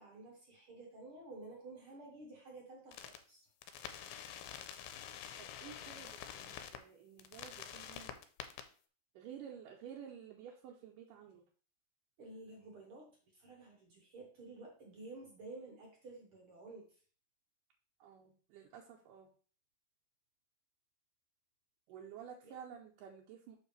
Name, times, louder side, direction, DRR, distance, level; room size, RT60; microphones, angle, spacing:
voice 1, 0.0-3.5 12.2-16.9 22.4-22.5, right 2 dB, 60° right, 0 dB, 1.4 m, -52 dB
sound 1, 2.9-3.2 3.6-6.8 7.2-8.6, left 9 dB, 90° left, 2.5 m, -47 dB
voice 2, 5.4-8.1 9.2-11.4 18.0-19.3 21.9-23.6, right 8 dB, 75° right, -1 dB, 2.2 m, -52 dB
7.2 x 5.9 x 3.3 m, 0.41 s
omnidirectional pair, 4.3 m